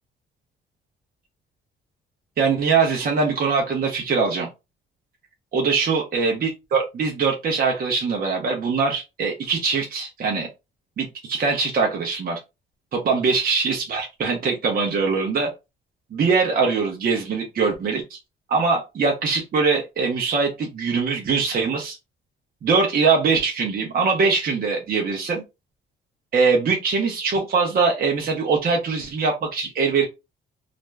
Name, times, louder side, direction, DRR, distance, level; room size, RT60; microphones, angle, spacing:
voice 1, 2.4-4.5 5.5-10.5 11.0-12.4 12.9-15.5 16.1-18.2 18.5-22.0 22.6-25.4 26.3-30.1, right 4 dB, 50° right, 0 dB, 0.7 m, -22 dB
2.5 x 2.1 x 3.2 m, 0.25 s
cardioid pair, 90°, 20 cm